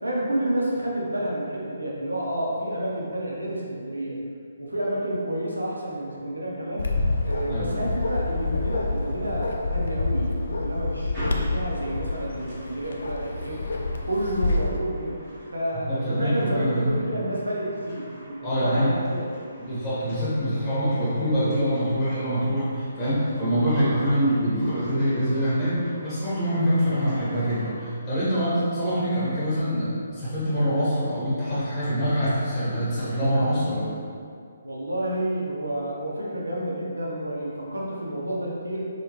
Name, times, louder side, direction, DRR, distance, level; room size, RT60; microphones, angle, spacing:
voice 1, 0.0-4.2 4.6-6.9 7.2-13.6 14.0-15.2 15.5-19.5 34.6-38.8, right 1 dB, 85° right, -4 dB, 0.7 m, -30 dB
Bark, 6.8-14.8, left 2 dB, 65° left, 0.3 m, -28 dB
voice 2, 7.4-7.8 15.7-17.0 18.4-18.9 19.6-34.0, equal, 10° left, -12 dB, 1.2 m, -25 dB
sound 1, 11.1-27.9, equal, 15° right, 1.3 m, -45 dB
3.5 x 2.3 x 2.9 m, 2.3 s
figure-of-eight pair, 140°, 0 cm